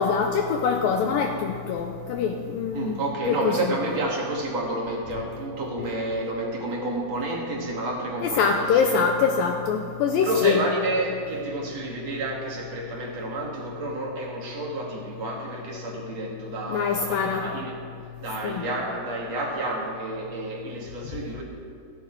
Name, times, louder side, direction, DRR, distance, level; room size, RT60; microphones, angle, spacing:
voice 1, 0.0-3.0 3.3-3.5 8.2-10.6 16.7-17.5 18.4-18.6, left 6 dB, 85° left, 4 dB, 2.0 m, -24 dB
voice 2, 2.7-9.0 10.2-17.8 18.2-21.4, right 2 dB, 45° right, -2 dB, 2.6 m, -30 dB
16.5 x 15.5 x 4.6 m, 2.4 s
omnidirectional pair, 5.1 m